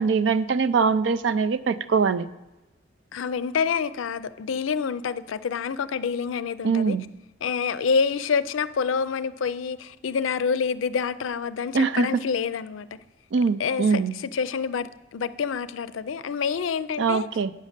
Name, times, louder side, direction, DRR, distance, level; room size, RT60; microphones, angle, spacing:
voice 1, 0.0-2.3 6.6-7.0 11.7-12.2 13.3-14.1 17.0-17.5, right 5 dB, 70° right, 0.4 m, -22 dB
voice 2, 3.1-7.0 7.4-12.9 13.6-17.3, left 6 dB, 85° left, 0.4 m, -27 dB
9.3 x 6.3 x 6.6 m
head